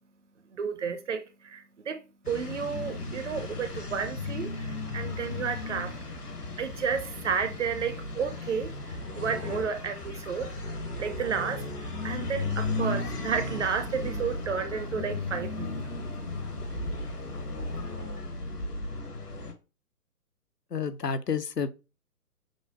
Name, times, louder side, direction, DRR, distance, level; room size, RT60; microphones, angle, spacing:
voice 1, 0.6-6.0 6.6-10.5 11.0-15.8, right 6 dB, 50° right, 0.6 m, -32 dB
sound 1, 2.2-19.5, left 2 dB, 75° left, 1.1 m, -35 dB
voice 2, 20.7-21.7, left 6 dB, 90° left, 0.6 m, -30 dB
6.0 x 2.1 x 2.8 m
figure-of-eight pair, 130°, 47 cm